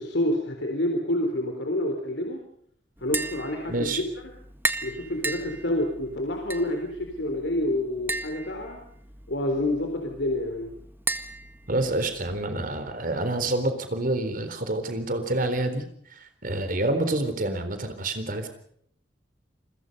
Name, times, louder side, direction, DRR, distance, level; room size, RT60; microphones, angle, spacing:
voice 1, 0.0-2.4 3.0-4.0 4.8-8.8 9.3-10.7, left 1 dB, 85° left, 3 dB, 3.9 m, -28 dB
Tap, 3.0-12.5, right 3 dB, 10° right, 1.7 m, -36 dB
voice 2, 3.7-4.0 11.7-15.8 16.2-18.5, right 2 dB, 50° right, 9 dB, 4.0 m, -27 dB
29.5 x 22.0 x 5.5 m, 0.67 s
head